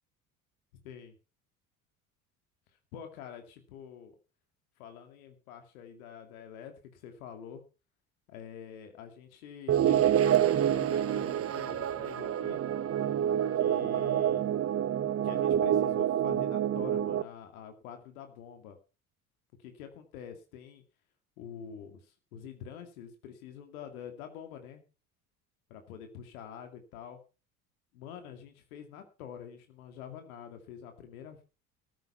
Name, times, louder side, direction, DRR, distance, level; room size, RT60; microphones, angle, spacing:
voice 1, 0.8-1.2 2.9-4.2 4.8-7.6 8.3-12.6 13.5-14.5 15.2-18.8 19.6-20.8 21.4-24.8 25.7-27.2 27.9-31.4, left 8 dB, 65° left, 6 dB, 2.5 m, -46 dB
sound 1, 9.7-17.2, right 10 dB, 30° right, 1.0 m, -27 dB
14.5 x 10.5 x 5.7 m, 0.34 s
figure-of-eight pair, 65°, 45 cm